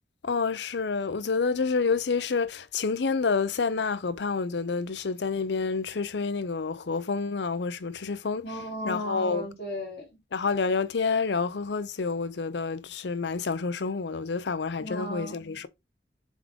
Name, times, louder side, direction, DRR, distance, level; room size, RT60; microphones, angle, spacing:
voice 1, 0.2-8.4 8.9-9.4 10.3-15.7, left 4 dB, 75° left, 0.6 m, -28 dB
voice 2, 8.4-10.0 14.8-15.4, equal, 60° left, 3.3 m, -35 dB
7.2 x 3.6 x 3.6 m
head